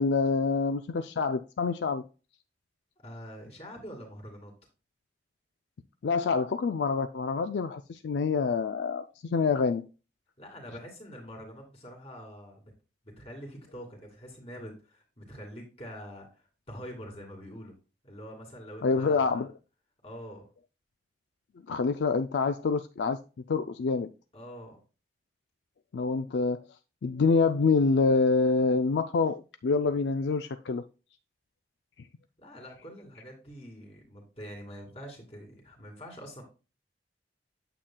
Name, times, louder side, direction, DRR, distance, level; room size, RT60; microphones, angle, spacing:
voice 1, 0.0-2.0 6.0-9.9 18.8-19.5 21.7-23.2 23.5-24.1 25.9-26.6 27.0-30.8, left 4 dB, 75° left, 0.4 m, -26 dB
voice 2, 3.0-4.5 10.4-12.7 13.2-17.8 18.0-19.4 20.0-20.5 24.3-24.8 32.4-36.4, equal, 35° left, 2.4 m, -45 dB
8.9 x 7.2 x 2.2 m
head